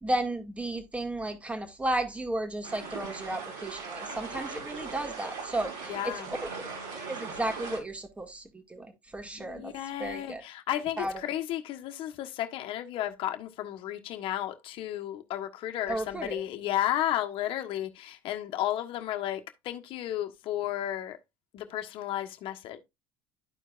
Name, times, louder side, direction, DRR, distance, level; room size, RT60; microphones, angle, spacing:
voice 1, 0.0-6.7 6.9-9.7 10.0-10.4 10.7-11.2 15.9-16.4, right 1 dB, 10° right, 2.0 m, -34 dB
sound 1, 2.6-7.8, right 4 dB, 75° right, 4.3 m, -39 dB
voice 2, 5.9-6.3 9.4-21.2 21.5-22.8, left 12 dB, 60° left, 1.3 m, -33 dB
12.5 x 4.6 x 2.5 m
supercardioid pair, 85°, 10 cm